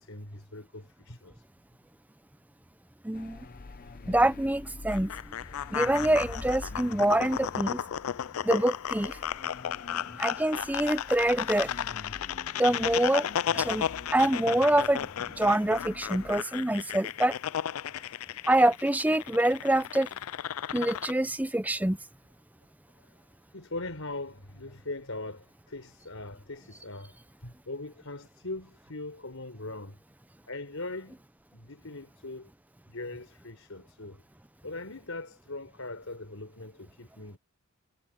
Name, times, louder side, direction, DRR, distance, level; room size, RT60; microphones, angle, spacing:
voice 1, 0.0-1.4 10.3-10.6 23.0-23.1 23.5-27.2 27.4-30.0 30.5-31.2 31.5-32.5 32.9-34.2 34.6-37.4, left 2 dB, 70° left, 4.5 m, -41 dB
voice 2, 3.0-3.4 4.1-5.1 5.7-7.8 8.4-9.2 10.2-11.7 12.6-13.3 13.5-15.1 15.4-17.4 18.5-20.1 20.7-22.0, right 1 dB, 10° right, 0.6 m, -25 dB
sound 1, 3.1-16.4, left 3 dB, 45° left, 0.6 m, -46 dB
sound 2, 4.9-21.1, left 9 dB, 85° left, 0.4 m, -34 dB
head